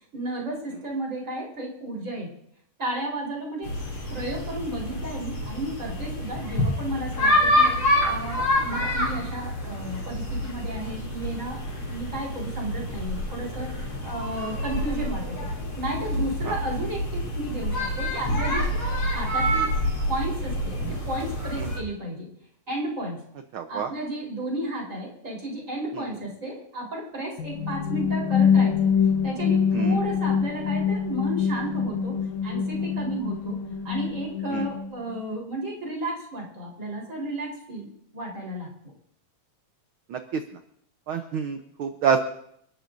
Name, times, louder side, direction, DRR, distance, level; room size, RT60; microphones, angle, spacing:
voice 1, 0.1-2.3 2.8-3.7 4.1-15.5 15.8-18.7 19.0-19.7 20.1-22.3 22.7-23.2 23.7-28.9 29.2-38.7, right 1 dB, 25° right, -3 dB, 4.4 m, -33 dB
sound 1, 3.6-21.8, left 1 dB, 45° left, 4.5 m, -27 dB
voice 2, 23.5-23.9 25.9-26.0 29.7-30.0 34.5-34.7 40.1-40.4 41.1-42.2, right 7 dB, 70° right, 6 dB, 1.3 m, -27 dB
sound 2, 27.4-35.2, left 7 dB, 80° left, 2.4 m, -25 dB
30.0 x 12.0 x 2.6 m, 0.69 s
omnidirectional pair, 3.3 m